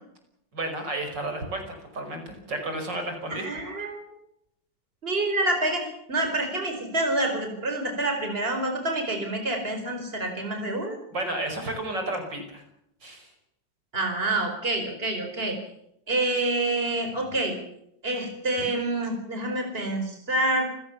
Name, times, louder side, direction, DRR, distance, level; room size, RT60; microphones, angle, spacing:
voice 1, 0.5-1.6 1.9-3.4 11.1-12.6 13.0-13.3, right 1 dB, 75° right, 5 dB, 6.0 m, -32 dB
voice 2, 3.3-4.1 5.0-11.0 13.9-15.6 16.1-17.6 18.0-20.6, right 2 dB, 30° right, 4 dB, 4.8 m, -27 dB
29.5 x 16.0 x 7.0 m, 0.77 s
omnidirectional pair, 2.0 m